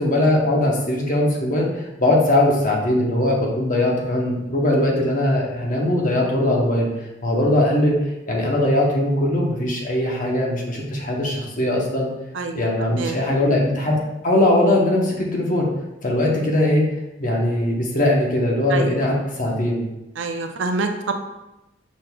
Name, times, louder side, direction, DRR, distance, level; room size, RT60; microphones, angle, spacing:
voice 1, 0.0-6.9 7.2-8.0 8.3-12.1 12.5-14.0 14.2-15.7 16.0-16.8 17.2-19.8, left 1 dB, 45° left, -1 dB, 0.9 m, -20 dB
voice 2, 12.3-13.2 18.7-19.0 20.2-21.1, right 3 dB, 80° right, 5 dB, 0.5 m, -26 dB
6.2 x 3.7 x 2.3 m, 0.95 s
head